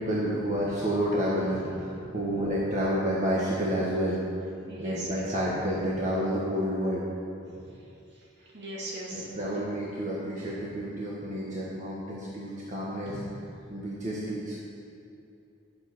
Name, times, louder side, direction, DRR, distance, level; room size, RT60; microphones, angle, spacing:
voice 1, 0.0-1.6 2.1-4.2 4.8-7.0 9.1-13.2 13.7-14.6, equal, 40° right, -6 dB, 1.6 m, -29 dB
voice 2, 1.5-2.4 4.7-5.3 7.5-7.6 8.5-9.3 10.4-10.5 13.0-13.3, right 1 dB, 60° right, -4 dB, 2.3 m, -40 dB
11.5 x 7.8 x 6.2 m, 2.7 s
head